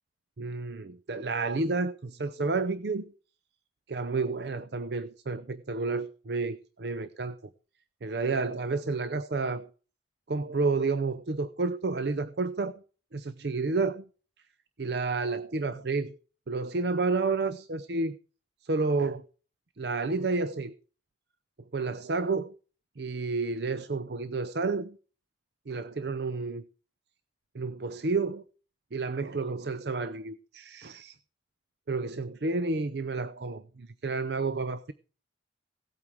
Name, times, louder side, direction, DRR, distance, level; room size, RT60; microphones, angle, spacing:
voice 1, 0.4-3.1 3.9-7.4 8.0-9.7 10.3-12.8 13.1-14.1 14.8-16.2 16.5-18.2 18.6-19.3 19.8-20.7 21.7-22.5 23.0-25.0 25.7-26.7 27.5-28.4 28.9-31.2 31.9-34.9, right 3 dB, 65° right, 14 dB, 0.6 m, -30 dB
17.0 x 8.7 x 4.7 m, 0.39 s
head